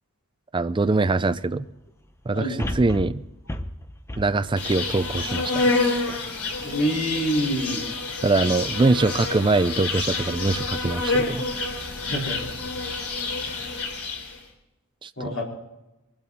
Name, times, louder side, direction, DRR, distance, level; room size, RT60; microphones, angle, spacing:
voice 1, 0.5-1.7 2.3-3.2 4.2-6.2 8.2-11.4 15.0-15.3, right 3 dB, 20° right, 11 dB, 0.4 m, -23 dB
sound 1, 0.9-1.0 2.6-5.9 6.4-6.5, left 1 dB, 10° left, 0.7 m, -34 dB
Insect, 4.6-14.4, left 3 dB, 85° left, 3.2 m, -28 dB
voice 2, 6.6-7.8 12.0-12.4 15.2-15.4, equal, 60° left, -3 dB, 4.6 m, -26 dB
22.0 x 12.5 x 4.2 m, 0.95 s
head